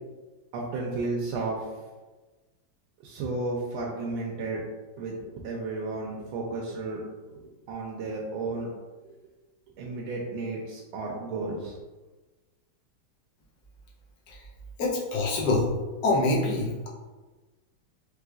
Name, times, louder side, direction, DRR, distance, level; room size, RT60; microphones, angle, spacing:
voice 1, 0.5-1.7 3.0-4.6 5.0-7.0 7.3-7.4 7.7-8.7 9.0-9.1 9.8-11.8, right 3 dB, 85° right, -3 dB, 1.4 m, -33 dB
voice 2, 14.8-15.7 16.0-16.9, left 2 dB, 60° left, -3 dB, 1.2 m, -25 dB
4.7 x 3.2 x 2.4 m, 1.2 s
omnidirectional pair, 2.2 m